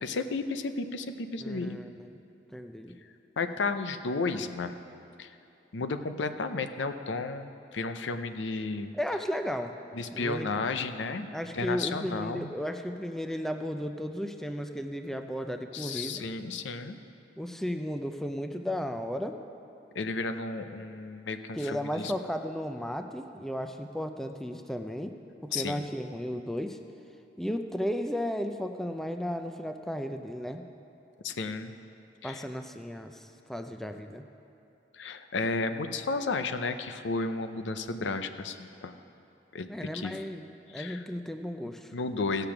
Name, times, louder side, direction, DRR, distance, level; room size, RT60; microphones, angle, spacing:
voice 1, 0.0-1.8 3.4-4.7 5.2-5.3 5.7-8.9 10.0-11.3 11.5-12.5 15.7-17.0 19.9-22.1 25.5-25.8 31.2-31.7 32.2-32.4 34.9-39.0 39.5-40.1 40.7-41.0 41.9-42.5, left 3 dB, 90° left, 9 dB, 0.6 m, -33 dB
voice 2, 1.4-2.2 2.5-3.0 8.9-9.7 10.1-10.6 11.3-16.2 17.4-19.4 21.5-25.1 25.4-26.8 27.4-30.7 32.2-34.2 39.7-41.9, equal, ahead, 6 dB, 0.4 m, -34 dB
16.5 x 6.8 x 5.9 m, 2.7 s
head